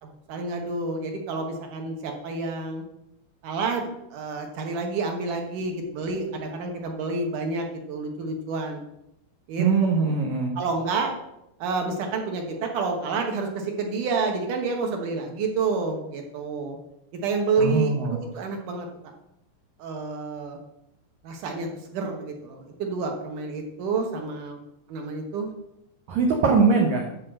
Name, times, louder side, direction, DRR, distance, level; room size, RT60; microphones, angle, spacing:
voice 1, 0.0-2.8 3.4-8.8 9.5-9.7 10.6-11.1 11.6-16.8 17.1-18.9 19.8-20.6 21.2-24.6 24.9-25.5, right 4 dB, 60° right, 3 dB, 2.3 m, -29 dB
voice 2, 9.6-10.6 17.6-18.2 26.1-27.0, right 4 dB, 80° right, 2 dB, 1.6 m, -21 dB
11.0 x 4.3 x 7.7 m, 0.84 s
omnidirectional pair, 4.9 m